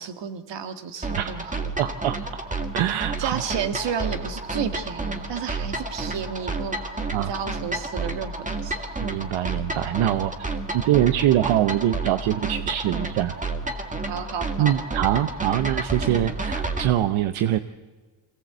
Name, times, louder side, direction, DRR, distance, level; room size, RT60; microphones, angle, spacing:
voice 1, 0.0-1.5 1.8-2.0 3.2-8.9 14.0-14.7, right 7 dB, 60° right, 8 dB, 1.9 m, -32 dB
sound 1, 1.0-16.9, right 2 dB, 15° right, 2.0 m, -30 dB
voice 2, 1.8-2.2 2.7-3.4 7.1-7.3 9.0-10.3 10.7-13.4 14.6-17.6, right 12 dB, 80° right, 11 dB, 0.9 m, -23 dB
23.0 x 17.5 x 8.0 m, 1.3 s
cardioid pair, 105°, 48 cm